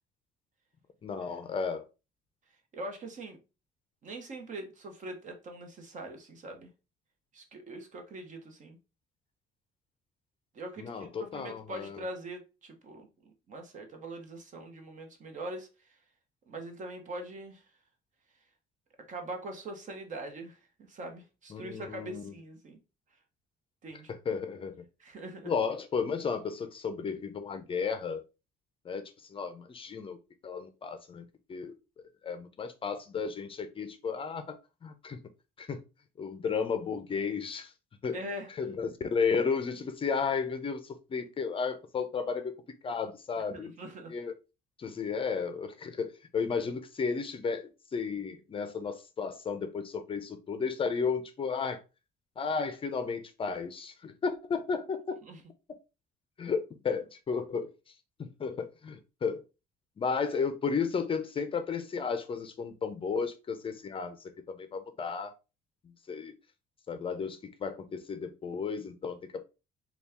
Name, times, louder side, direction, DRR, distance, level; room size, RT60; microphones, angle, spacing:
voice 1, 1.0-1.9 10.8-12.0 21.5-22.3 24.1-24.8 25.4-28.2 28.9-29.0 29.3-30.2 30.4-31.8 32.2-34.5 34.8-35.2 35.6-35.8 36.2-37.7 38.0-38.2 38.6-42.6 42.8-43.7 44.1-44.3 44.8-51.8 52.4-55.2 56.4-57.7 58.2-59.4 60.0-64.2 64.5-65.3 66.1-66.3 66.9-69.4, left 5 dB, 30° left, 0.5 m, -33 dB
voice 2, 2.7-3.4 4.0-6.7 7.3-8.8 10.5-16.0 16.5-17.6 19.1-22.8 23.8-24.1 25.0-25.5 38.1-38.5 43.5-44.1 55.2-55.4, right 1 dB, 45° right, 1.1 m, -42 dB
4.1 x 2.3 x 3.5 m
cardioid pair, 110°, 17 cm